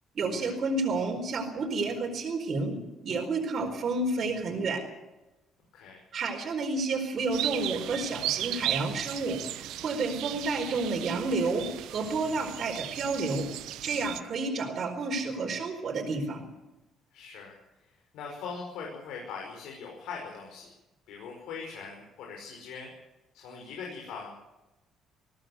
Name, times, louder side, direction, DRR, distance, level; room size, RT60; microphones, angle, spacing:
voice 1, 0.1-2.8 3.0-4.8 6.1-13.5 13.8-16.4, right 3 dB, 40° right, 0 dB, 4.4 m, -30 dB
sound 1, 7.3-14.2, right 13 dB, 85° right, 1.1 m, -36 dB
voice 2, 17.1-17.5 18.1-20.7 21.1-22.9 23.3-24.4, left 5 dB, 80° left, -1 dB, 5.8 m, -41 dB
21.0 x 17.5 x 8.0 m, 1.0 s
cardioid pair, 150°, 0 cm